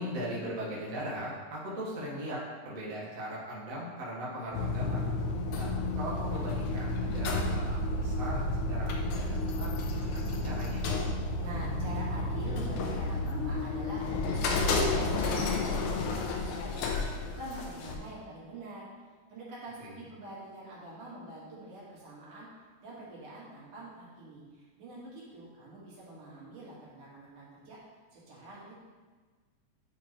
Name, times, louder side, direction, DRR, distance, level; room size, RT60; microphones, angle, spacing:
voice 1, 0.0-5.1 5.5-10.8 19.8-20.0, equal, 35° right, -6 dB, 1.4 m, -39 dB
sound 1, 4.5-18.0, left 2 dB, 75° left, 2.1 m, -31 dB
voice 2, 11.4-18.9 19.3-22.5 22.8-27.8 28.1-28.7, right 2 dB, 80° right, -7 dB, 3.5 m, -45 dB
10.5 x 4.9 x 3.2 m, 1.4 s
omnidirectional pair, 3.6 m